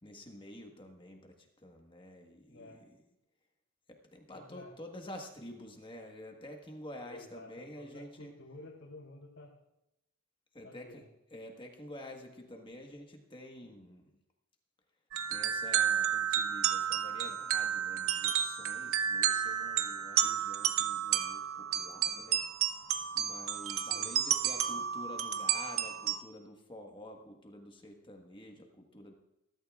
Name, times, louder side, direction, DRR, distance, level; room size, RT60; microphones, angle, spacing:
voice 1, 0.0-3.0 3.9-8.3 10.5-11.0 11.3-14.1 15.3-22.4 23.1-29.1, left 1 dB, 25° left, 2 dB, 1.4 m, -49 dB
voice 2, 2.5-2.8 4.3-4.7 7.0-9.5 10.6-11.1 23.9-24.1, left 2 dB, 80° left, -6 dB, 3.4 m, -51 dB
sound 1, 15.1-26.2, right 9 dB, 80° right, 0.8 m, -31 dB
21.5 x 12.5 x 2.4 m, 0.90 s
head